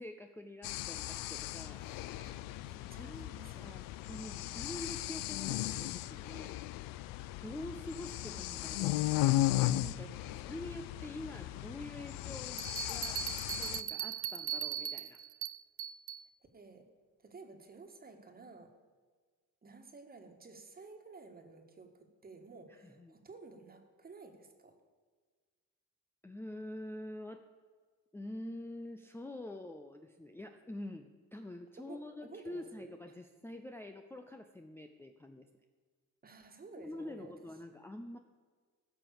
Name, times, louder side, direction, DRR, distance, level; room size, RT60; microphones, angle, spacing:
voice 1, 0.0-1.8 3.0-6.6 7.4-13.3 13.6-15.2 23.0-23.2 26.2-27.5 28.1-35.5 36.8-38.2, left 1 dB, 5° left, 5 dB, 0.6 m, -46 dB
sound 1, 0.6-13.8, left 16 dB, 85° left, 0.5 m, -36 dB
voice 2, 1.8-2.4 2.6-3.8 8.0-8.5 13.1-13.7 16.5-16.9 17.2-18.7 19.6-24.7 31.8-32.9 36.2-37.3, right 3 dB, 30° right, 5 dB, 1.7 m, -54 dB
sound 2, 12.6-16.2, right 10 dB, 45° right, 0.5 m, -39 dB
15.5 x 5.9 x 6.8 m, 1.5 s
cardioid pair, 105°, 32 cm